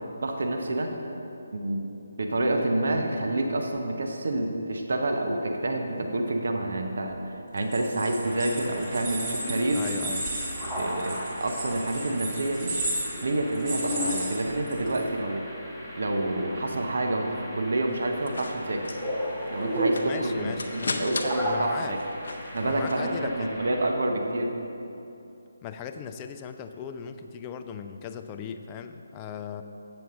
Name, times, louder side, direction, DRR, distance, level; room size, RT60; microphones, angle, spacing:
voice 1, 0.2-0.9 1.5-1.8 2.2-9.8 10.7-12.7 13.2-15.4 16.0-18.8 19.5-20.5 21.0-22.0 22.5-24.5, right 1 dB, 60° right, 3 dB, 0.8 m, -28 dB
sound 1, 7.6-15.0, right 2 dB, 25° right, 1.7 m, -34 dB
sound 2, 8.2-23.9, equal, ahead, 1.1 m, -35 dB
voice 2, 9.7-10.2 20.0-21.1 21.4-22.0 22.6-23.7 25.6-29.6, left 7 dB, 20° left, 7 dB, 0.3 m, -38 dB
sound 3, 17.9-23.2, left 3 dB, 60° left, 0.6 m, -38 dB
7.8 x 7.0 x 3.7 m, 2.8 s
figure-of-eight pair, 150°, 0 cm